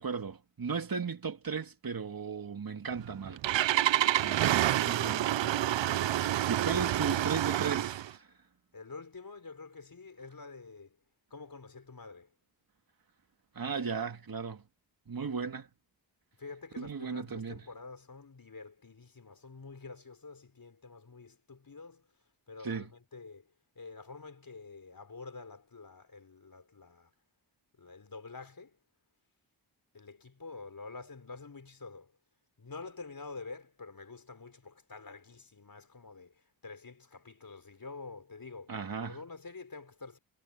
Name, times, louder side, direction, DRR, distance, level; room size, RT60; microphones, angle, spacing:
voice 1, 0.0-3.6 4.2-8.3 13.5-14.6 15.1-15.7 16.8-17.6 22.6-22.9 38.7-39.2, right 5 dB, 50° right, 2.4 m, -37 dB
Engine starting, 2.9-8.1, right 13 dB, 75° right, 0.6 m, -28 dB
voice 2, 8.7-11.0 11.3-12.3 16.4-22.1 22.5-27.1 27.8-28.8 29.9-32.1 32.6-40.2, left 4 dB, 50° left, 5.3 m, -48 dB
cardioid pair, 55°, 44 cm